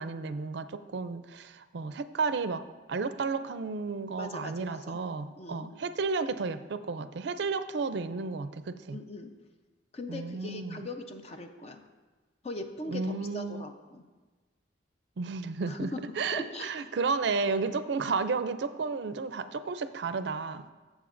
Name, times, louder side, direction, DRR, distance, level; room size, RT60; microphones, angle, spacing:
voice 1, 0.0-2.6 2.9-9.0 10.1-10.9 12.9-13.6 15.2-15.9 16.2-20.7, right 4 dB, 65° right, 11 dB, 0.4 m, -32 dB
voice 2, 4.2-5.0 5.4-5.7 8.9-9.3 9.9-11.8 12.4-14.0 15.7-16.0 16.3-16.7, left 2 dB, 35° left, 6 dB, 0.6 m, -40 dB
15.5 x 7.2 x 2.5 m, 1.3 s
head